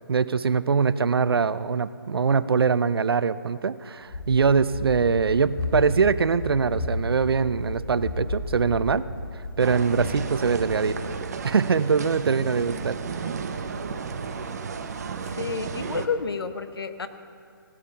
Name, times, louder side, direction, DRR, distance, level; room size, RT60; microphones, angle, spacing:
voice 1, 0.1-9.1 9.6-11.0 11.4-13.0, right 5 dB, 85° right, 15 dB, 0.6 m, -23 dB
Run, 4.0-11.1, left 1 dB, 50° left, 3.9 m, -33 dB
sound 1, 9.6-16.1, right 5 dB, 45° right, 0.8 m, -33 dB
voice 2, 15.4-17.1, left 5 dB, 80° left, 10 dB, 1.0 m, -30 dB
17.5 x 8.3 x 5.7 m, 2.4 s
hypercardioid pair, 165°, 12 cm